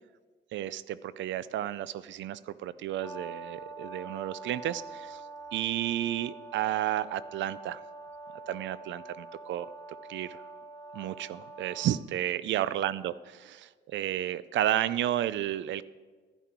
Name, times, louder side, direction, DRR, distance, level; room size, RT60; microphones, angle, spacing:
voice 1, 0.5-5.2 5.5-7.8 8.5-9.7 10.1-10.4 10.9-15.8, right 12 dB, 70° right, 17 dB, 0.4 m, -32 dB
Brass instrument, 3.0-12.0, right 3 dB, 20° left, 1.2 m, -45 dB
11.0 x 10.0 x 4.5 m, 1.4 s
cardioid pair, 90°, 20 cm